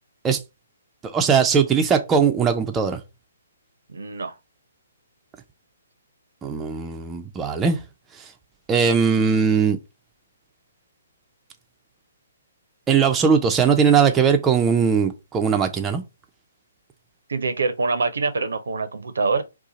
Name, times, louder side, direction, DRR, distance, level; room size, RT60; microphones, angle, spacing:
voice 1, 1.1-3.0 6.4-7.8 8.7-9.8 12.9-16.0, right 6 dB, 15° right, 0.4 m, -19 dB
voice 2, 3.9-4.3 17.3-19.4, right 4 dB, 70° right, 0.5 m, -25 dB
2.7 x 2.4 x 3.8 m
figure-of-eight pair, 135°, 0 cm